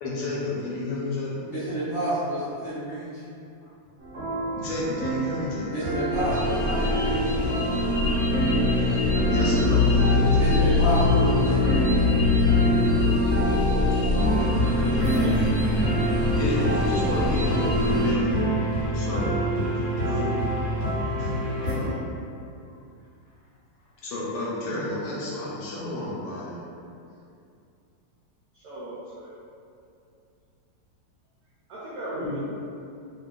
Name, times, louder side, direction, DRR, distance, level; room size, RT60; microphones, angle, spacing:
voice 1, 0.0-1.5 3.6-3.7 4.5-5.7 8.7-10.5 13.3-15.3 16.2-18.4 18.9-19.4 20.0-20.3 21.2-21.3 21.6-22.0 24.0-26.6 32.2-32.4, left 2 dB, 70° left, -6 dB, 1.2 m, -32 dB
voice 2, 1.5-3.2 5.6-7.3 10.3-12.0, equal, 55° left, -13 dB, 0.8 m, -29 dB
sound 1, 4.0-21.7, right 1 dB, 50° right, 1.0 m, -28 dB
sound 2, 6.1-18.1, left 3 dB, 10° right, 1.1 m, -23 dB
voice 3, 14.8-15.5 21.5-22.0 28.5-29.3 31.7-32.4, right 1 dB, 75° right, -9 dB, 0.9 m, -37 dB
2.8 x 2.3 x 2.3 m, 2.5 s
omnidirectional pair, 2.0 m